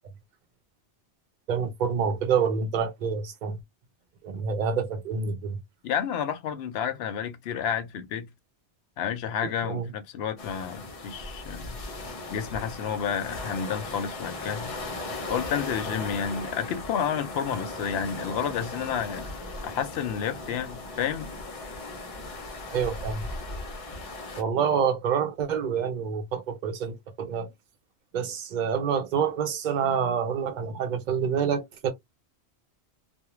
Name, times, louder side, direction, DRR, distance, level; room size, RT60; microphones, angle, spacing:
voice 1, 1.5-3.6 4.2-5.6 9.6-9.9 22.7-23.2 24.4-27.5 28.1-31.9, right 6 dB, 50° right, 0.7 m, -27 dB
voice 2, 5.8-8.3 9.0-11.8 12.3-14.7 15.3-19.3 19.6-21.4, left 8 dB, 70° left, 0.8 m, -30 dB
sound 1, 10.4-24.4, left 2 dB, 40° left, 0.6 m, -37 dB
2.4 x 2.1 x 3.0 m
omnidirectional pair, 1.1 m